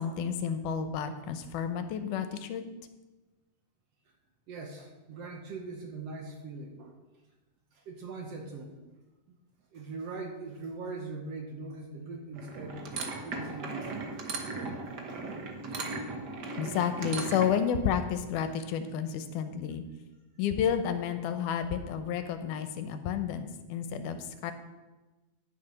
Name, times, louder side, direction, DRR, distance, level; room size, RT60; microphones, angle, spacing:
voice 1, 0.0-2.7 16.6-19.8 20.4-24.5, left 8 dB, 80° left, 9 dB, 2.2 m, -31 dB
voice 2, 4.5-6.9 7.7-8.7 9.3-9.4 9.7-14.3, right 3 dB, 65° right, 2 dB, 1.8 m, -41 dB
sound 1, 12.3-17.6, right 3 dB, 85° right, 0.9 m, -37 dB
10.5 x 6.7 x 5.6 m, 1.1 s
omnidirectional pair, 3.7 m